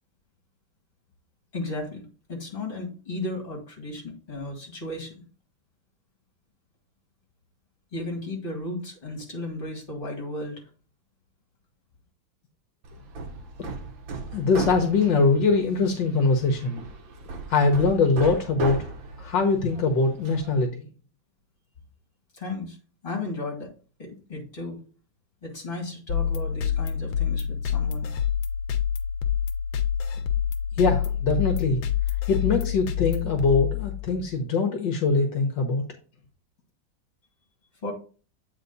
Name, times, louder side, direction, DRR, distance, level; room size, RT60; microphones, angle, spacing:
voice 1, 1.5-5.2 7.9-10.6 22.4-22.8 23.0-23.7 24.0-24.8 25.4-28.1 37.8-37.9, left 2 dB, 25° left, -1 dB, 2.5 m, -34 dB
Hammer, 12.8-20.7, right 4 dB, 80° right, 1.7 m, -37 dB
voice 2, 14.3-16.8 17.5-18.8 19.2-20.9 30.8-31.8 32.3-35.8, left 4 dB, 70° left, 3 dB, 1.6 m, -22 dB
sound 1, 26.1-34.3, left 9 dB, 90° left, 1.6 m, -27 dB
8.1 x 4.1 x 4.0 m, 0.38 s
omnidirectional pair, 2.1 m